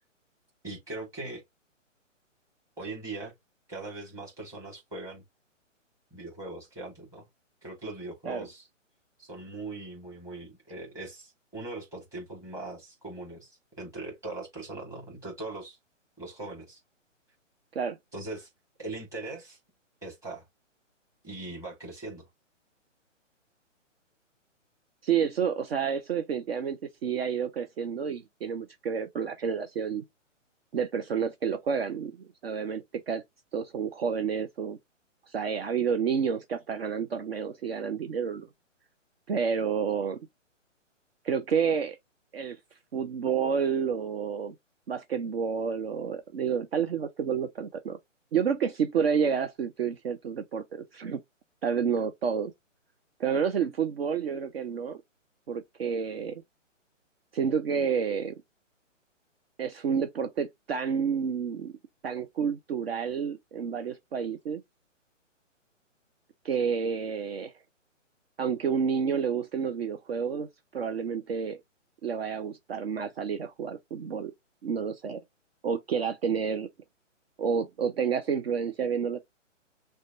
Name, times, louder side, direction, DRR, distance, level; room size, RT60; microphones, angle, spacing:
voice 1, 0.6-1.4 2.8-3.3 3.7-5.2 6.1-7.2 7.6-8.7 9.2-15.8 16.2-16.8 18.1-18.5 18.8-19.6 20.0-20.4 21.2-22.2, right 2 dB, 10° right, 1.4 m, -40 dB
voice 2, 25.0-30.0 30.7-33.2 33.5-34.8 35.3-38.5 39.3-40.2 41.2-42.0 42.3-42.6 42.9-44.5 44.9-48.0 48.3-51.2 51.6-52.5 53.2-55.0 55.5-56.4 57.3-58.3 59.6-61.7 62.0-64.6 66.4-67.5 68.4-71.6 72.0-74.3 74.6-75.2 75.6-76.7 77.4-79.2, right 7 dB, 50° right, 0.6 m, -29 dB
6.2 x 2.2 x 2.5 m
hypercardioid pair, 155°, 38 cm